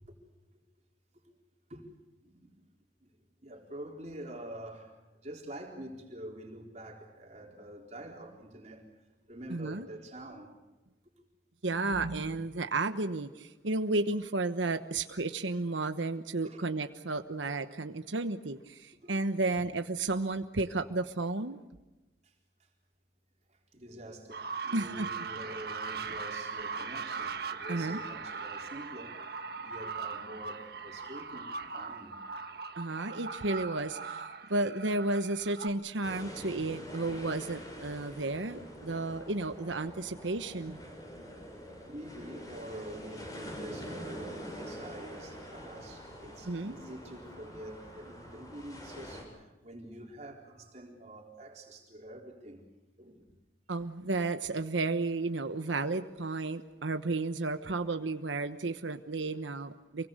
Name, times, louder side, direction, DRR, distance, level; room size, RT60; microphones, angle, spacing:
voice 1, 3.4-4.9 5.2-8.9 9.3-10.5 16.4-16.6 18.9-19.1 23.7-29.2 29.6-32.2 38.5-38.7 41.9-52.6 53.0-53.2 59.2-59.4, right 1 dB, 35° right, 0 dB, 4.1 m, -46 dB
voice 2, 9.5-9.9 11.6-21.6 24.7-25.1 27.7-28.0 32.8-40.8 46.4-46.8 53.7-60.1, right 2 dB, 85° right, 9 dB, 1.1 m, -33 dB
sound 1, 24.3-35.7, right 5 dB, 55° right, 1.6 m, -40 dB
sound 2, 36.0-49.2, equal, 20° left, 7.3 m, -45 dB
28.5 x 23.5 x 6.7 m, 1.1 s
head